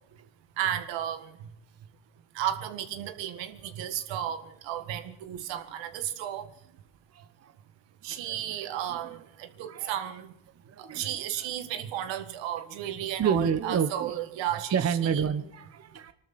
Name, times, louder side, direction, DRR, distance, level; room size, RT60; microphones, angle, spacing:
voice 1, 0.6-1.3 2.4-6.5 8.0-10.3 10.8-15.2, right 11 dB, 80° right, 11 dB, 1.8 m, -33 dB
voice 2, 7.1-7.5 8.1-9.1 9.7-9.9 10.7-11.1 13.2-14.1 14.7-16.1, right 7 dB, 35° right, 12 dB, 1.2 m, -30 dB
24.5 x 13.0 x 4.3 m, 0.75 s
cardioid pair, 95°, 44 cm